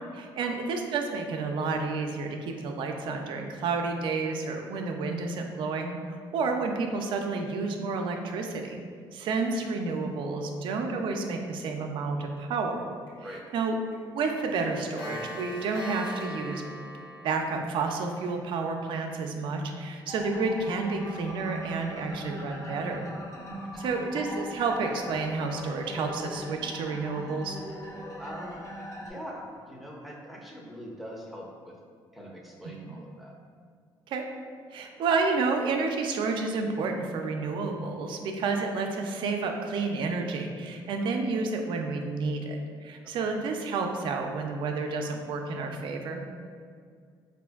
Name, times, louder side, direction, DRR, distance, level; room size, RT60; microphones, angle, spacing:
voice 1, 0.1-8.8 9.1-12.8 13.5-16.6 17.2-23.0 23.8-27.6 32.8-33.0 34.1-34.2 34.7-46.2, right 4 dB, 70° right, 3 dB, 0.4 m, -30 dB
Clock, 13.1-13.2 13.5-13.7 13.9-14.0 14.3-18.4, equal, 60° left, 1.0 m, -40 dB
sound 1, 20.1-29.1, equal, 35° left, 0.7 m, -40 dB
voice 2, 28.2-28.7 29.0-31.7 32.1-33.3 43.2-43.3, equal, ahead, -2 dB, 0.5 m, -43 dB
4.2 x 2.5 x 2.3 m, 2.1 s
cardioid pair, 105°, 9 cm